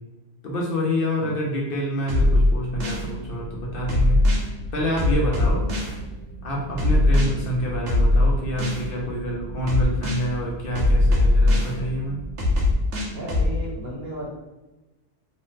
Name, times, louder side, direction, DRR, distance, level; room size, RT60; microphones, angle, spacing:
voice 1, 0.4-4.2 4.7-5.6 6.4-12.2, equal, 60° left, -3 dB, 0.7 m, -27 dB
sound 1, 2.1-3.1 3.9-4.5 5.0-5.9 6.8-7.3 7.9-8.8 9.7-10.2 10.8-11.7 12.4-13.5, left 2 dB, 90° right, 1.1 m, -19 dB
sound 2, 2.7-12.5, right 2 dB, 30° left, 0.9 m, -37 dB
voice 2, 5.2-5.7 13.1-14.3, equal, 60° right, -3 dB, 1.0 m, -35 dB
3.1 x 2.0 x 3.1 m, 1.1 s
omnidirectional pair, 1.2 m